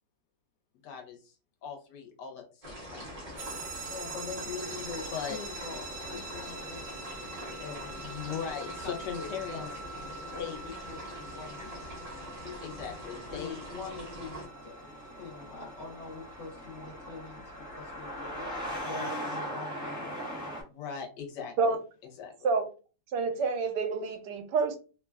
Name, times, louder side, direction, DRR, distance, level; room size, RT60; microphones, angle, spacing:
voice 1, 0.8-1.4 1.6-3.1 5.1-5.4 8.0-9.7 10.4-10.6 12.6-13.7 20.6-21.8 22.2-22.3, left 8 dB, 85° left, 1.3 m, -39 dB
sound 1, 2.6-14.5, equal, 35° right, 0.7 m, -43 dB
sound 2, 2.9-20.6, equal, 15° left, 0.6 m, -43 dB
sound 3, 3.4-18.8, right 4 dB, 55° right, 1.0 m, -45 dB
voice 2, 3.9-5.0 5.3-7.1 7.6-8.1 8.8-11.9 12.4-12.7 13.3-18.5 18.9-20.1, left 5 dB, 65° left, 0.7 m, -44 dB
voice 3, 23.1-24.8, right 4 dB, 80° right, 1.1 m, -28 dB
3.0 x 2.2 x 2.2 m
omnidirectional pair, 1.8 m